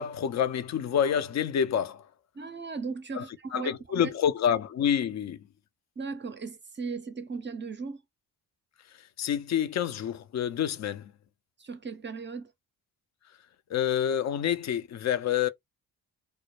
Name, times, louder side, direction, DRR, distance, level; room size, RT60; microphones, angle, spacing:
voice 1, 0.0-2.0 3.1-3.3 3.5-5.4 9.2-11.1 13.7-15.5, left 9 dB, 45° left, 0.4 m, -27 dB
voice 2, 2.3-4.1 6.0-8.0 11.6-12.5, right 4 dB, 30° right, 0.5 m, -37 dB
2.1 x 2.0 x 2.9 m
supercardioid pair, 50°, 39 cm